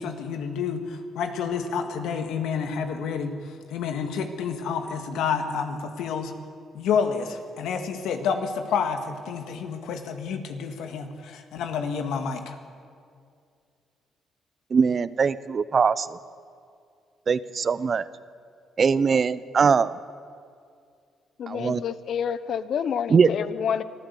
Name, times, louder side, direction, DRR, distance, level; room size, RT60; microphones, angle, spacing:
voice 1, 0.0-6.3 6.7-12.6, left 6 dB, 85° left, 6 dB, 2.0 m, -29 dB
voice 2, 14.7-16.2 17.3-18.1 18.8-19.9 21.5-21.8 23.1-23.3, right 5 dB, 45° right, 16 dB, 0.7 m, -21 dB
voice 3, 21.4-23.8, left 8 dB, 65° left, 14 dB, 1.0 m, -28 dB
24.5 x 14.0 x 8.4 m, 2.3 s
cardioid pair, 90°, 0 cm